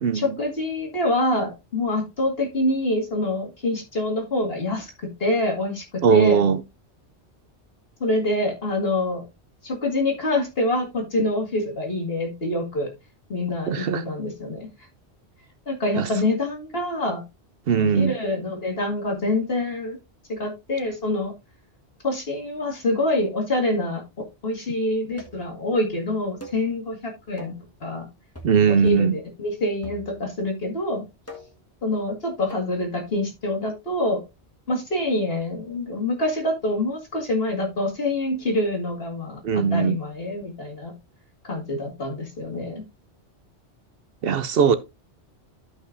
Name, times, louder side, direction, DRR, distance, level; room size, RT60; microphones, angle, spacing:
voice 1, 0.1-6.4 8.0-9.3 9.6-12.9 13.3-14.7 15.7-17.2 17.8-20.0 20.3-21.3 22.0-27.5 27.8-28.1 28.8-31.0 31.8-34.2 34.7-40.9 41.4-42.8, left 1 dB, 60° left, 2.4 m, -26 dB
voice 2, 6.0-6.6 13.7-14.0 16.0-16.1 17.7-18.1 28.4-29.1 39.4-40.0 44.2-44.8, right 6 dB, 65° right, 0.8 m, -19 dB
sound 1, 25.2-25.5 26.4-26.7 27.4-27.7 28.3-28.6 28.9-29.2 29.8-30.4 31.3-31.7 32.5-32.7, right 1 dB, 15° left, 1.4 m, -42 dB
13.0 x 5.5 x 2.6 m
omnidirectional pair, 1.1 m